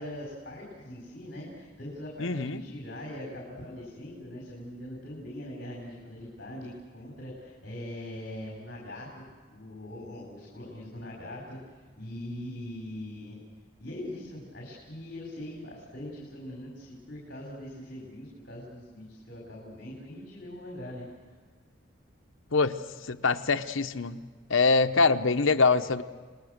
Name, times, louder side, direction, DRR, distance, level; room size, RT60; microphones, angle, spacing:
voice 1, 0.0-9.2 9.5-11.6 11.9-13.4 13.8-21.0, left 1 dB, 45° left, -2 dB, 4.8 m, -41 dB
voice 2, 2.2-2.6 22.5-22.8 23.1-24.2 24.5-26.0, left 4 dB, 75° left, 8 dB, 0.9 m, -24 dB
30.0 x 20.0 x 6.6 m, 1.5 s
head